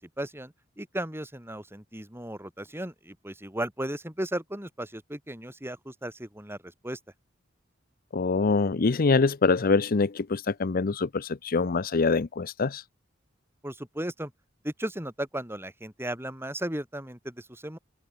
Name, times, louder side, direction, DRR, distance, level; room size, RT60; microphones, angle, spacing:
voice 1, 0.2-6.6 6.8-7.0 13.6-14.3 14.6-17.8, right 1 dB, 10° right, 6.5 m, -35 dB
voice 2, 8.1-12.8, left 4 dB, 45° left, 0.6 m, -24 dB
head